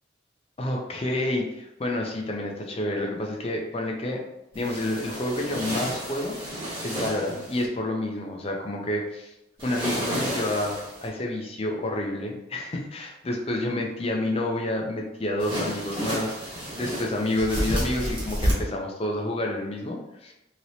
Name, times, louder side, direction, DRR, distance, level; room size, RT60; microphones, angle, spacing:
voice 1, 0.6-4.2 4.5-9.3 9.6-20.3, left 1 dB, 30° left, 1 dB, 0.5 m, -29 dB
sound 1, 4.5-7.6 9.6-11.1 15.4-18.5, equal, 25° right, 1.1 m, -31 dB
3.0 x 3.0 x 2.7 m, 0.88 s
head